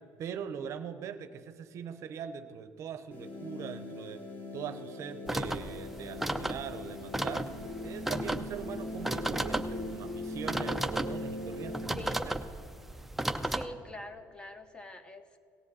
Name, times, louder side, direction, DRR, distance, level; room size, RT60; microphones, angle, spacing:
voice 1, 0.2-4.2 4.5-7.5 7.8-12.4, right 7 dB, 55° right, 11 dB, 0.7 m, -41 dB
sound 1, 3.1-11.8, left 2 dB, 30° left, 2.6 m, -41 dB
sound 2, 5.3-13.6, right 1 dB, 5° right, 0.5 m, -35 dB
voice 2, 12.0-12.3 13.4-15.4, left 1 dB, 15° left, 9 dB, 0.8 m, -44 dB
17.5 x 7.7 x 4.1 m, 2.4 s
cardioid pair, 120°, 6 cm